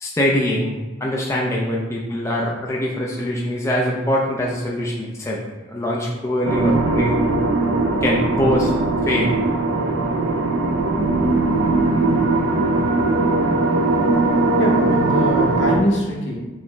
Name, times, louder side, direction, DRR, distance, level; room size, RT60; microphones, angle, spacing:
voice 1, 0.0-5.4 5.7-7.2 8.0-8.7 9.0-9.3, left 1 dB, 15° left, -3 dB, 0.3 m, -23 dB
sound 1, 6.5-15.8, right 2 dB, 80° right, 0.4 m, -19 dB
voice 2, 14.6-16.3, equal, 60° left, -2 dB, 0.9 m, -23 dB
5.9 x 2.0 x 3.1 m, 1.2 s
head